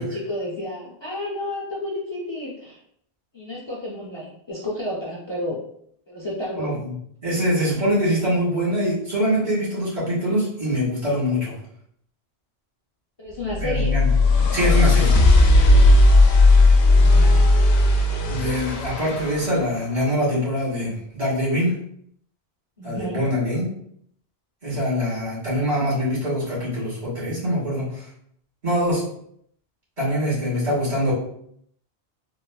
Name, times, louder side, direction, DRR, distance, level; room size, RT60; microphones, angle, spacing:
voice 1, 0.0-2.8 3.3-5.6 6.1-6.8 13.2-14.0 16.9-17.4 22.8-23.4, left 1 dB, 30° left, -6 dB, 0.6 m, -31 dB
voice 2, 6.6-6.9 7.2-11.6 13.6-14.1 14.5-15.2 18.3-21.7 22.8-23.6 24.6-28.0 28.6-29.0 30.0-31.1, equal, 75° right, -8 dB, 2.0 m, -23 dB
sound 1, 13.5-19.6, left 2 dB, 70° left, 0.8 m, -15 dB
3.9 x 2.0 x 2.3 m, 0.69 s
omnidirectional pair, 1.1 m